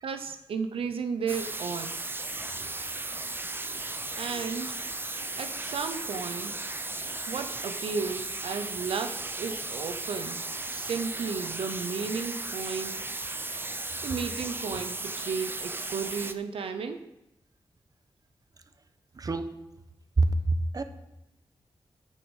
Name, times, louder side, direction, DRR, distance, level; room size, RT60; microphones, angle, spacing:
voice 1, 0.0-2.1 4.2-4.8 5.4-6.6 7.3-10.4 10.7-13.0 14.0-17.1, right 5 dB, 90° right, 8 dB, 0.6 m, -34 dB
sound 1, 1.3-16.3, right 2 dB, 25° right, 0.7 m, -36 dB
voice 2, 19.1-19.6 20.2-20.8, right 2 dB, 40° right, 9 dB, 1.0 m, -27 dB
13.5 x 6.3 x 5.3 m, 0.90 s
cardioid pair, 75°, 9 cm